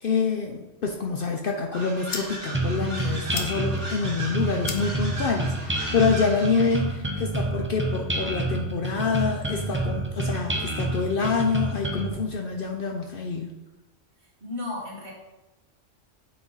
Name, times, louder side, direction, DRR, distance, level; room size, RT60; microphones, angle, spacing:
voice 1, 0.0-13.5, left 5 dB, 60° left, 2 dB, 0.7 m, -26 dB
sound 1, 1.5-7.5, left 6 dB, 85° left, 1.1 m, -42 dB
sound 2, 1.7-6.9, right 1 dB, 70° right, 2.0 m, -37 dB
sound 3, 2.5-12.1, right 2 dB, 15° right, 0.6 m, -28 dB
voice 2, 14.4-15.1, left 2 dB, 50° right, -3 dB, 1.7 m, -33 dB
7.6 x 4.1 x 3.9 m, 1.0 s
omnidirectional pair, 1.2 m